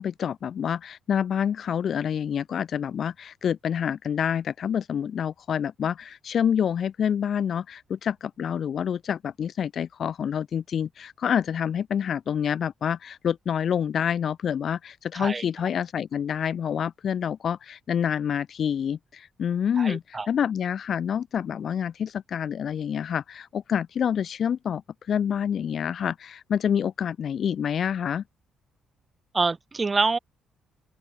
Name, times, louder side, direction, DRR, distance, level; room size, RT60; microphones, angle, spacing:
voice 1, 0.0-24.8 25.1-28.2, left 8 dB, 60° left, 0.3 m, -27 dB
voice 2, 19.8-20.3 29.3-30.2, right 4 dB, 30° right, 0.6 m, -26 dB
open air
cardioid pair, 90°, 0 cm